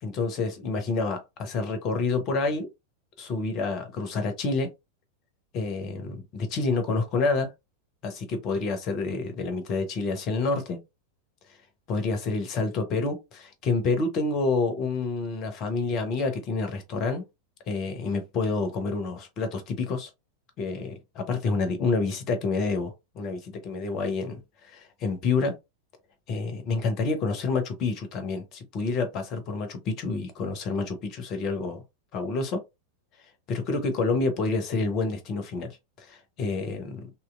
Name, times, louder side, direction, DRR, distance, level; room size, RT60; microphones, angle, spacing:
voice 1, 0.0-2.7 3.2-4.7 5.5-7.5 8.0-10.8 11.9-17.2 17.7-20.1 20.6-25.5 26.3-31.8 32.1-32.6 33.5-35.7 36.0-37.1, left 3 dB, 35° left, 0.8 m, -28 dB
2.8 x 2.7 x 2.4 m
figure-of-eight pair, 90°, 0 cm